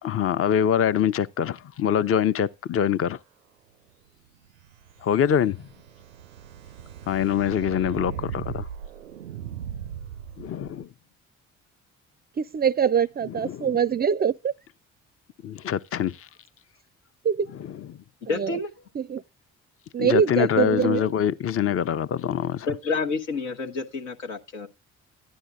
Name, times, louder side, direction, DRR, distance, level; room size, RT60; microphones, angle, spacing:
voice 1, 0.0-3.2 5.0-5.7 7.1-8.7 10.4-10.9 13.4-13.7 15.4-16.3 20.0-22.7, left 9 dB, 35° left, 0.7 m, -24 dB
sound 1, 4.5-10.8, right 9 dB, 90° right, 0.5 m, -38 dB
voice 2, 12.4-14.5 17.2-17.5 18.3-18.6 18.9-19.2 19.9-21.1, right 7 dB, 25° right, 0.4 m, -23 dB
voice 3, 18.2-18.7 22.7-24.7, left 4 dB, 75° left, 1.3 m, -29 dB
13.0 x 11.0 x 2.4 m
figure-of-eight pair, 45°, 38 cm